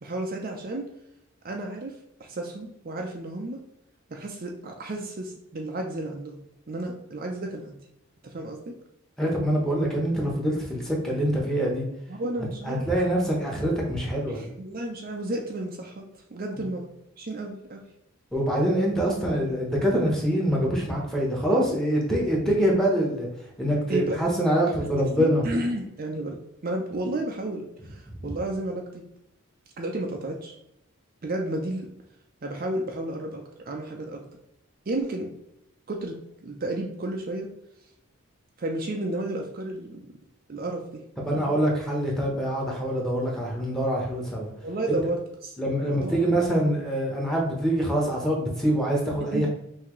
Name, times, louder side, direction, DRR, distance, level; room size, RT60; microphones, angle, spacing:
voice 1, 0.0-0.9 1.4-3.6 4.1-7.8 8.2-8.7 12.1-12.9 14.3-17.8 23.9-24.2 24.6-29.0 29.8-30.6 31.2-31.9 32.4-34.3 34.9-35.3 35.9-37.5 38.6-40.2 40.5-41.0 41.3-41.5 44.6-46.4 49.3-49.5, right 1 dB, 40° right, 2 dB, 0.5 m, -32 dB
voice 2, 9.2-11.8 12.6-14.4 18.3-23.3 23.6-25.4 28.2-28.3 41.2-44.5 45.6-49.5, right 1 dB, ahead, -3 dB, 1.0 m, -25 dB
5.8 x 2.8 x 3.1 m, 0.82 s
head